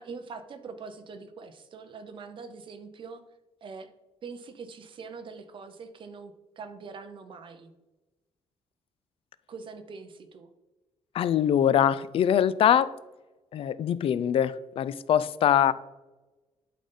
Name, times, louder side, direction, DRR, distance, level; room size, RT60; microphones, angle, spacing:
voice 1, 0.0-3.2 3.6-3.9 4.2-7.7 9.5-10.5 15.7-15.8, right 5 dB, 45° right, 0.7 m, -43 dB
voice 2, 11.1-13.0 13.5-15.7, left 9 dB, 55° left, 0.4 m, -23 dB
11.5 x 4.0 x 3.8 m
cardioid pair, 145°, 12 cm